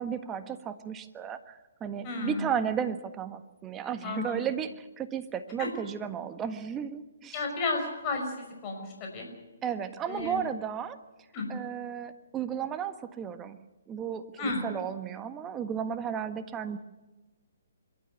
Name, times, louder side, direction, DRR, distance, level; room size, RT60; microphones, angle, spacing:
voice 1, 0.0-7.4 9.6-11.0 11.5-13.6 13.9-16.8, right 8 dB, 20° right, 9 dB, 1.5 m, -34 dB
voice 2, 2.0-2.4 4.0-4.4 5.6-5.7 7.3-9.3 10.1-10.4 11.3-11.5 14.4-14.7, left 3 dB, 30° left, 1 dB, 5.7 m, -33 dB
26.0 x 13.0 x 9.4 m, 1.1 s
hypercardioid pair, 140°, 0 cm